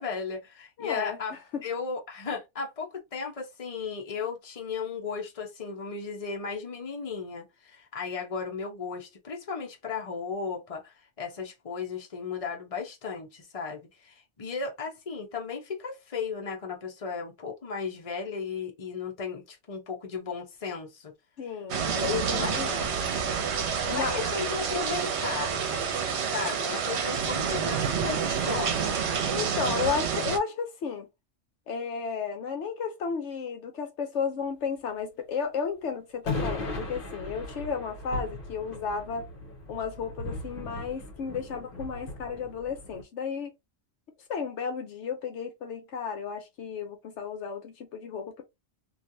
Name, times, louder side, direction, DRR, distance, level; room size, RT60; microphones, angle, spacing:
voice 1, 0.0-1.3 1.6-21.1 21.8-21.9 22.3-22.6 23.8-25.5 26.2-29.0, left 5 dB, 30° left, 0.9 m, -35 dB
voice 2, 0.8-1.6 21.4-23.1 23.9-24.2 29.3-31.1 31.7-39.3 39.7-43.5 44.3-48.4, left 6 dB, 70° left, 0.9 m, -33 dB
sound 1, 21.7-30.4, right 6 dB, 65° right, 1.0 m, -28 dB
sound 2, 22.2-27.4, equal, 15° right, 0.8 m, -46 dB
sound 3, 36.3-43.0, left 2 dB, 50° left, 1.2 m, -37 dB
3.2 x 2.5 x 2.6 m
omnidirectional pair, 1.3 m